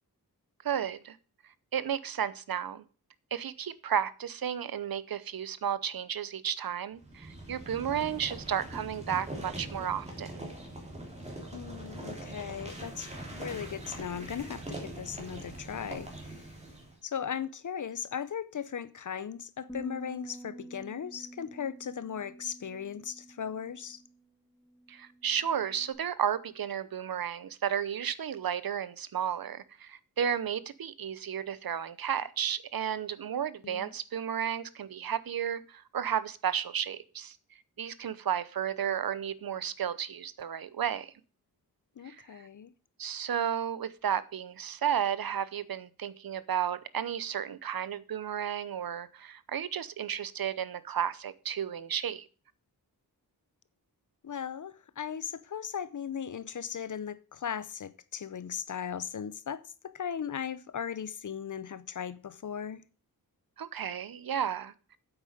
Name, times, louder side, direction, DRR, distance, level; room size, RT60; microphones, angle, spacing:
voice 1, 0.6-1.2 1.7-2.8 3.3-10.5 24.9-37.4 37.8-41.1 42.0-42.2 43.0-52.3 63.6-64.7, right 9 dB, 65° right, 0.8 m, -33 dB
sound 1, 7.0-17.0, right 1 dB, 15° right, 3.1 m, -42 dB
voice 2, 11.5-16.4 17.0-24.0 33.6-33.9 42.0-42.7 54.2-62.8, left 8 dB, 50° left, 0.7 m, -38 dB
sound 2, 19.7-25.9, right 1 dB, 5° left, 2.2 m, -48 dB
9.2 x 8.1 x 5.0 m
wide cardioid pair, 170°, 38 cm